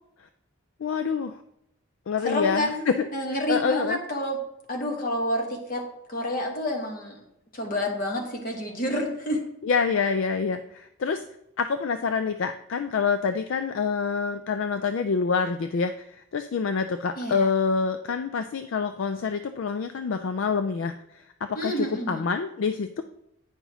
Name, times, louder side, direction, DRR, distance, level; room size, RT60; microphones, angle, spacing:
voice 1, 0.8-1.4 2.1-3.1 3.5-4.0 9.6-11.2 11.6-20.9 21.4-23.0, left 5 dB, 60° left, 9 dB, 0.3 m, -26 dB
voice 2, 2.2-2.8 3.1-4.4 4.7-5.8 6.1-7.2 7.5-9.4 17.2-17.5 21.5-22.2, left 1 dB, 40° left, 1 dB, 1.5 m, -28 dB
9.5 x 5.5 x 3.0 m, 0.82 s
head